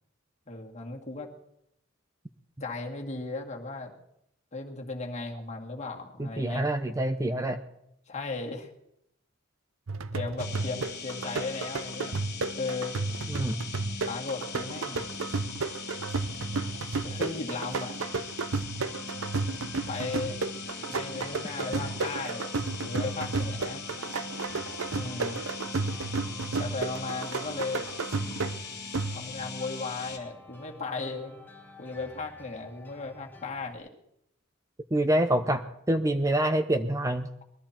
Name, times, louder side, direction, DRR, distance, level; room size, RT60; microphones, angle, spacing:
voice 1, 0.5-1.3 2.6-3.9 4.5-6.7 8.1-8.7 10.1-12.2 12.6-13.0 14.1-15.1 17.0-18.2 19.9-20.4 20.9-22.5 22.8-23.8 24.9-25.4 26.6-27.8 29.1-31.4 31.8-33.9, left 3 dB, 35° left, 1 dB, 2.2 m, -36 dB
voice 2, 6.2-7.6 13.3-13.6 34.9-37.3, right 1 dB, 15° right, 8 dB, 0.7 m, -26 dB
sound 1, 9.9-29.5, right 3 dB, 90° right, 0.7 m, -33 dB
sound 2, 10.4-30.2, left 5 dB, 50° left, 2.4 m, -40 dB
sound 3, 18.8-33.7, left 1 dB, 10° left, 2.1 m, -51 dB
21.0 x 13.5 x 4.4 m, 0.78 s
head